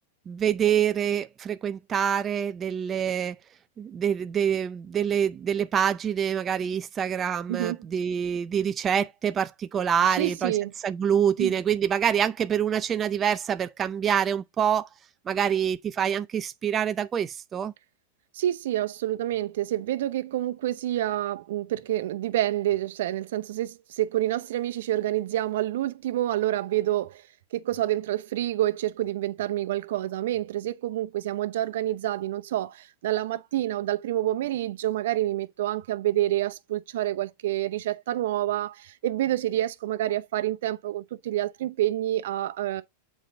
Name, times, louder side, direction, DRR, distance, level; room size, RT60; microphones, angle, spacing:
voice 1, 0.3-3.4 3.8-10.5 10.8-14.9 15.3-17.7, right 8 dB, 25° right, 0.4 m, -26 dB
voice 2, 10.1-10.7 11.4-11.5 18.3-27.2 27.5-42.8, right 13 dB, 75° right, 0.7 m, -28 dB
7.4 x 4.5 x 3.9 m
supercardioid pair, 135°, 0 cm